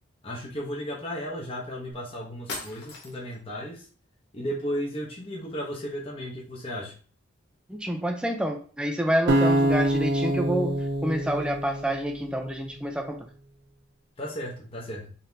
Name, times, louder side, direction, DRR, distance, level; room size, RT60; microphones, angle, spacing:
voice 1, 0.2-3.9 4.3-6.9 14.2-15.1, equal, 30° left, -3 dB, 0.9 m, -34 dB
sound 1, 1.9-2.0 2.5-3.4, left 3 dB, 55° left, 1.0 m, -38 dB
voice 2, 7.7-13.3, right 1 dB, 5° right, 3 dB, 0.5 m, -28 dB
sound 2, 9.3-12.4, right 1 dB, 60° right, 0.7 m, -25 dB
4.0 x 3.4 x 2.7 m, 0.41 s
head